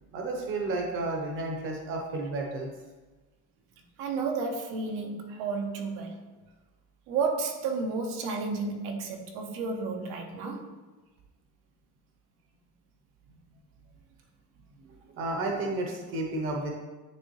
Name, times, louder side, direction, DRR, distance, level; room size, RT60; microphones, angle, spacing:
voice 1, 0.1-2.7 15.2-16.7, right 2 dB, 35° right, 1 dB, 0.8 m, -31 dB
voice 2, 4.0-6.2 7.1-10.7, right 4 dB, 85° right, 3 dB, 1.1 m, -32 dB
9.5 x 3.6 x 3.1 m, 1.2 s
cardioid pair, 180°, 35 cm